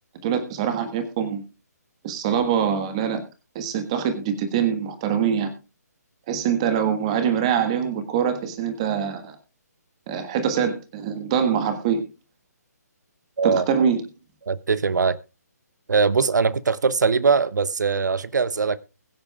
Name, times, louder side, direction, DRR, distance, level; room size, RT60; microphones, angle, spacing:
voice 1, 0.2-1.4 2.0-3.2 3.5-5.5 6.3-9.4 10.1-12.0 13.4-14.0, right 8 dB, 20° right, 1.5 m, -24 dB
voice 2, 14.5-15.2 15.9-18.8, right 5 dB, 90° right, 0.7 m, -21 dB
21.5 x 8.8 x 2.4 m
hypercardioid pair, 170°, 9 cm